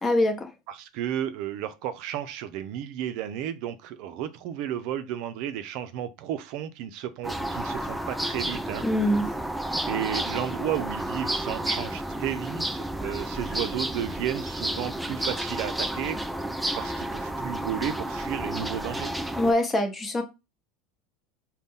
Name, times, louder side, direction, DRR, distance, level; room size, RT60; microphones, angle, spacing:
voice 1, 0.0-0.5 8.8-9.3 19.4-20.2, left 1 dB, 25° left, 0.9 m, -23 dB
voice 2, 0.7-8.8 9.9-16.2 16.7-19.1, right 10 dB, 65° right, 0.4 m, -33 dB
sound 1, 7.2-19.5, right 1 dB, 5° right, 0.4 m, -31 dB
4.0 x 2.2 x 3.6 m
supercardioid pair, 100°, 0 cm